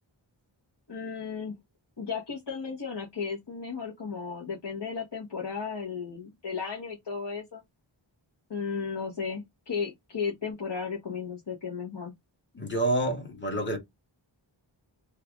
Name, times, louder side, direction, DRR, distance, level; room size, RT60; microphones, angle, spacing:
voice 1, 0.9-1.5 2.0-7.6 8.5-12.1, left 5 dB, 55° left, 1.1 m, -34 dB
voice 2, 12.5-13.8, right 1 dB, 20° left, 1.3 m, -28 dB
3.1 x 2.4 x 3.5 m
wide cardioid pair, 40°, 49 cm